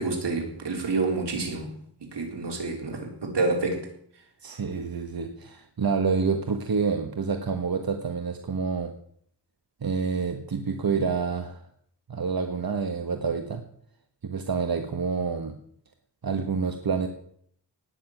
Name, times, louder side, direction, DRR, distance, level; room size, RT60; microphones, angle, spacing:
voice 1, 0.0-1.7 2.0-3.9, right 3 dB, 85° right, 1 dB, 4.1 m, -28 dB
voice 2, 4.4-8.9 9.8-11.6 12.1-13.6 14.2-15.6 16.2-17.1, right 5 dB, 60° right, 5 dB, 1.5 m, -28 dB
18.0 x 6.8 x 9.2 m, 0.64 s
wide cardioid pair, 80°, 41 cm